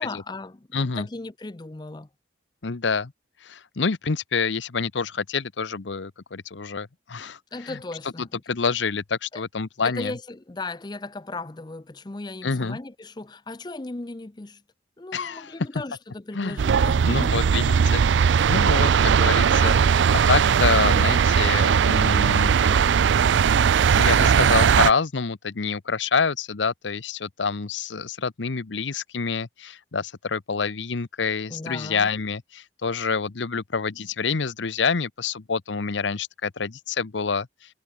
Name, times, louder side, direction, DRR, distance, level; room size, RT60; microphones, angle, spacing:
voice 1, 0.0-0.7 1.0-2.1 7.5-8.4 9.3-9.4 9.8-14.6 15.0-17.5 31.5-32.1, left 2 dB, 25° left, 0.5 m, -36 dB
voice 2, 0.7-1.1 2.6-3.1 3.4-7.8 8.2-10.2 12.4-12.8 15.1-15.5 16.3-16.6 17.0-22.8 23.6-37.5, left 5 dB, 85° left, 0.8 m, -27 dB
sound 1, 16.6-24.9, right 7 dB, 80° right, 0.4 m, -19 dB
head